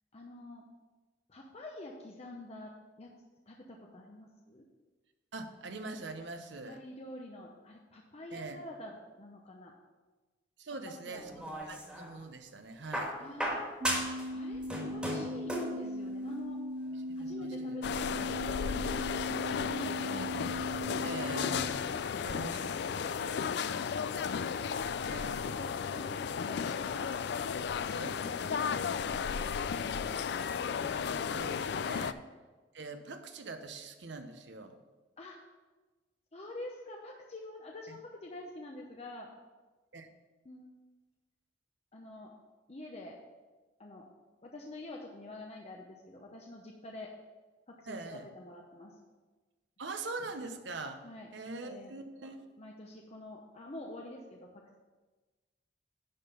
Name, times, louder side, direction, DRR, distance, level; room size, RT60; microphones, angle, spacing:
voice 1, 0.1-0.7 1.3-2.7 3.0-3.1 3.5-4.7 6.6-9.7 10.9-11.3 13.2-13.6 14.3-16.6 17.2-19.1 19.7-20.2 22.1-22.4 23.6-24.5 24.9-25.2 25.5-27.1 28.0-29.5 29.8-30.5 35.2-35.4 36.3-39.3 40.4-40.7 41.9-42.3 42.7-43.2 43.8-44.1 44.4-47.1 47.7-49.0 51.0-51.3 51.6-51.9 52.6-54.8, left 1 dB, 35° left, 0 dB, 0.8 m, -47 dB
voice 2, 5.3-6.8 8.3-8.6 10.6-13.1 16.9-17.8 20.0-20.7 21.0-21.8 22.2-22.7 23.1-23.4 25.1-25.4 27.9-28.1 30.3-32.2 32.7-34.8 37.9-38.0 39.9-40.1 47.8-48.3 49.8-51.0 51.3-52.4, right 3 dB, 75° right, 6 dB, 0.9 m, -43 dB
sound 1, 11.1-12.1 12.9-14.3 14.5-15.8 16.9-17.0, equal, 5° right, 1.7 m, -35 dB
sound 2, 13.8-21.7, left 1 dB, 30° right, 0.4 m, -39 dB
sound 3, 17.8-32.1, left 6 dB, 60° left, 0.3 m, -34 dB
10.5 x 3.8 x 6.8 m, 1.3 s
head